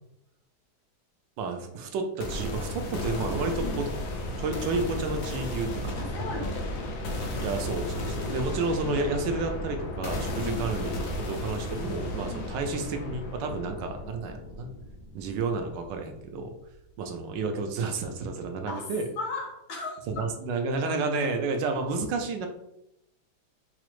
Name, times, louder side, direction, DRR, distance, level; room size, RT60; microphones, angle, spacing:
voice 1, 1.4-3.9 4.4-6.3 7.4-14.7 15.1-16.5 17.0-19.0 20.1-22.5, right 3 dB, 75° right, 5 dB, 1.2 m, -31 dB
sound 1, 2.2-16.1, left 1 dB, 65° left, 0.9 m, -34 dB
voice 2, 5.9-6.6 10.4-10.6 12.3-12.5 18.6-18.9 19.2-20.0, left 3 dB, 85° left, -1 dB, 1.7 m, -36 dB
4.8 x 2.0 x 3.0 m, 0.84 s
omnidirectional pair, 2.1 m